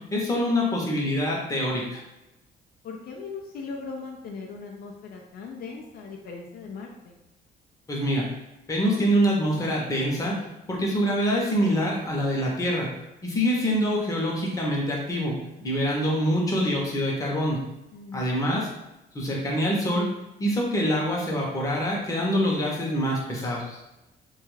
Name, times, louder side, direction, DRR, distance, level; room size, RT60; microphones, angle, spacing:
voice 1, 0.1-2.0 7.9-8.3 8.7-10.3 10.7-12.9 13.2-15.3 15.6-17.6 18.1-18.7 19.1-20.1 20.4-23.8, equal, 20° left, -3 dB, 0.7 m, -25 dB
voice 2, 2.8-7.1 17.9-18.7, left 4 dB, 65° left, 0 dB, 0.4 m, -39 dB
2.3 x 2.2 x 3.1 m, 0.96 s
cardioid pair, 135°, 17 cm